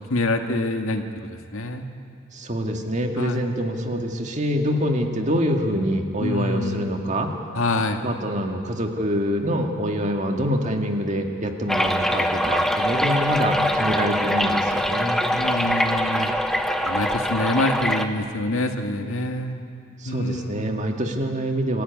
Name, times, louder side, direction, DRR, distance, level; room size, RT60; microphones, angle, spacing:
voice 1, 0.1-1.0 1.5-1.9 3.2-3.4 6.2-7.0 7.5-8.0 15.3-16.3 16.9-19.6 20.1-20.7, left 2 dB, 75° left, 5 dB, 1.8 m, -26 dB
voice 2, 2.3-7.3 8.0-15.2 20.0-21.8, equal, 35° right, 3 dB, 2.0 m, -25 dB
sound 1, 11.7-18.0, equal, ahead, 1.0 m, -23 dB
26.0 x 14.5 x 9.7 m, 2.5 s
head